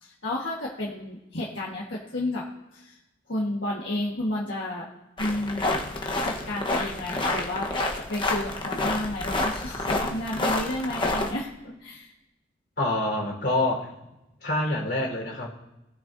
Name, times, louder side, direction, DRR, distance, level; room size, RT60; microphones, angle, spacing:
voice 1, 0.0-2.4 2.7-3.0 3.3-4.9 5.2-5.7 6.2-7.7 7.9-11.5 11.8-12.1, left 1 dB, 90° left, -3 dB, 1.5 m, -31 dB
sound 1, 5.2-11.3, left 2 dB, 25° left, 1.1 m, -28 dB
voice 2, 12.8-13.9 14.4-15.5, left 1 dB, 60° left, -3 dB, 4.2 m, -26 dB
19.0 x 6.6 x 2.7 m, 0.96 s
head